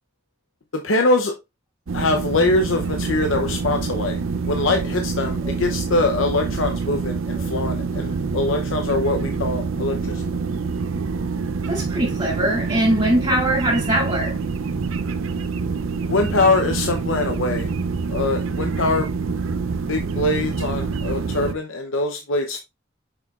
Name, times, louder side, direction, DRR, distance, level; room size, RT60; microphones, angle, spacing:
voice 1, 0.7-1.3 1.9-4.2 4.5-10.2 16.1-17.7 18.1-19.1 19.9-22.6, left 2 dB, 75° left, 0.8 m, -23 dB
sound 1, 1.9-21.5, right 4 dB, 85° right, 0.6 m, -26 dB
voice 2, 11.7-14.4, right 1 dB, 30° right, 3.6 m, -21 dB
6.9 x 5.6 x 2.4 m
head